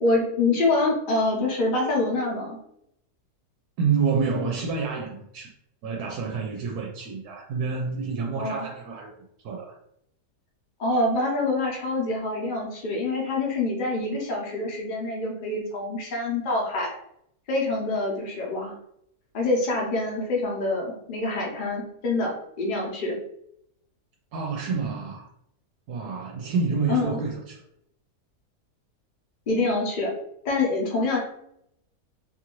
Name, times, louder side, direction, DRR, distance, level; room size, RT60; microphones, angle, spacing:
voice 1, 0.0-2.6 8.3-8.7 10.8-17.0 17.5-18.7 19.3-23.1 26.9-27.2 29.5-30.2 30.4-31.2, left 2 dB, 40° left, -2 dB, 0.8 m, -26 dB
voice 2, 3.8-5.5 5.8-9.1 9.4-9.7 24.3-25.3 25.9-27.6, right 5 dB, 80° right, 0 dB, 1.1 m, -28 dB
2.8 x 2.5 x 2.9 m, 0.74 s
omnidirectional pair, 1.6 m